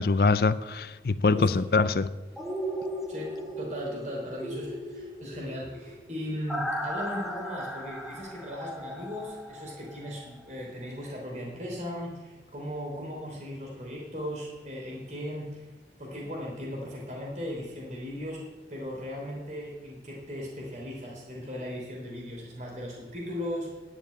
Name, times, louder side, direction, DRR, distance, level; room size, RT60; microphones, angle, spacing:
voice 1, 0.0-2.1, left 4 dB, 55° left, 0.5 m, -24 dB
voice 2, 1.3-1.6 3.1-15.6 16.0-18.4 18.7-23.7, equal, 40° right, 3.3 m, -37 dB
sound 1, 2.4-10.2 10.6-10.7, equal, ahead, 1.3 m, -37 dB
10.5 x 7.1 x 8.8 m
head